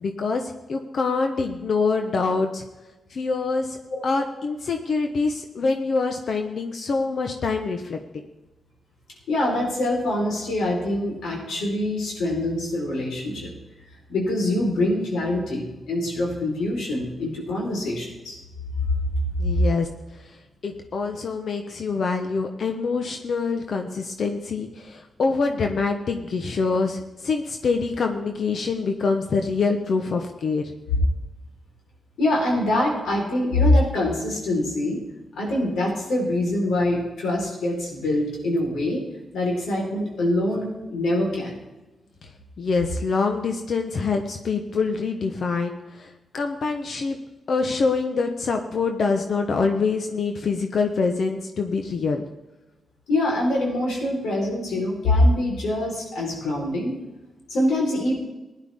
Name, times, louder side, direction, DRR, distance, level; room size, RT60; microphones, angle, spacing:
voice 1, 0.0-2.6 3.1-3.8 4.0-8.0 19.4-19.9 20.6-30.6 42.6-47.2 47.5-52.3, left 4 dB, 65° left, 5 dB, 1.0 m, -25 dB
voice 2, 3.9-4.2 9.3-13.5 14.1-18.4 32.2-35.0 35.4-39.0 39.3-41.6 53.1-56.9 57.5-58.2, left 1 dB, 90° left, -2 dB, 4.4 m, -24 dB
16.5 x 10.5 x 3.7 m, 1.1 s
cardioid pair, 65°, 0 cm